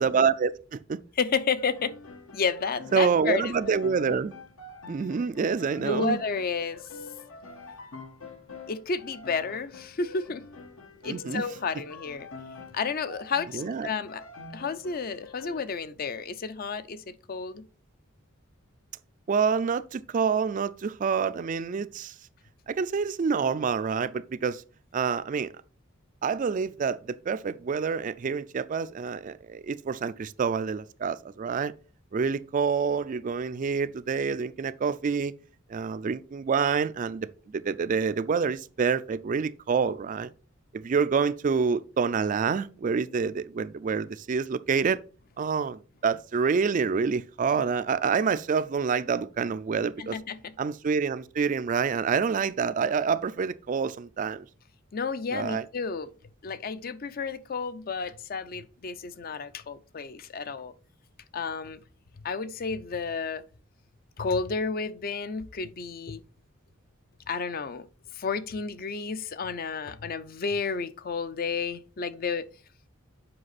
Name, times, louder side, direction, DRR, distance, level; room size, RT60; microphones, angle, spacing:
voice 1, 0.0-1.0 2.9-4.3 4.9-6.2 11.0-11.4 13.5-13.9 19.3-22.1 22.7-24.6 24.9-25.5 26.2-31.7 32.1-35.3 35.7-40.3 40.7-45.0 45.4-50.2 50.6-54.4 55.3-55.6, right 5 dB, 40° right, 0.3 m, -27 dB
voice 2, 1.2-1.9 2.3-3.8 5.8-6.8 8.7-10.4 11.0-12.3 12.7-14.2 14.5-17.6 50.0-50.5 54.9-56.1 56.4-60.7 61.3-61.8 62.2-63.4 64.2-66.2 67.3-67.9 68.1-72.4, left 5 dB, 45° left, 0.5 m, -31 dB
sound 1, 1.6-15.6, left 3 dB, 80° left, 1.3 m, -46 dB
7.7 x 5.1 x 4.1 m
head